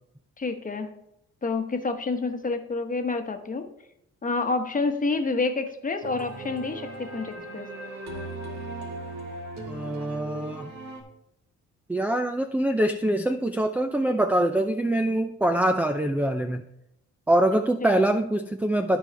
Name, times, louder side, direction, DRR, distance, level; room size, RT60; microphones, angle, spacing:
voice 1, 0.4-0.9 1.4-3.7 4.2-7.7 17.8-18.0, left 3 dB, 25° left, 6 dB, 1.1 m, -28 dB
sound 1, 6.0-11.0, right 2 dB, 60° right, 1.8 m, -38 dB
voice 2, 9.7-10.7 11.9-16.6 17.3-19.0, right 1 dB, 5° right, 7 dB, 0.4 m, -24 dB
13.5 x 4.7 x 3.4 m, 0.79 s
cardioid pair, 90°, 30 cm